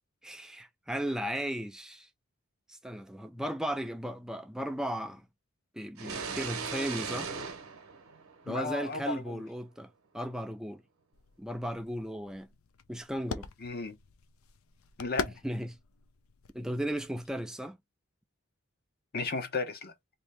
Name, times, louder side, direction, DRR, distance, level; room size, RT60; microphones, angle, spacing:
voice 1, 0.2-2.1 2.7-5.2 5.7-7.3 8.5-10.8 11.4-12.5 12.9-13.5 15.4-15.8 16.5-17.8, equal, 5° right, 0.4 m, -36 dB
sound 1, 6.0-8.8, right 5 dB, 85° right, 0.7 m, -38 dB
voice 2, 8.5-9.4 13.6-14.0 15.0-15.3 19.1-19.9, left 3 dB, 50° left, 0.8 m, -34 dB
sound 2, 11.1-17.4, left 6 dB, 80° left, 0.5 m, -43 dB
2.7 x 2.7 x 3.2 m
head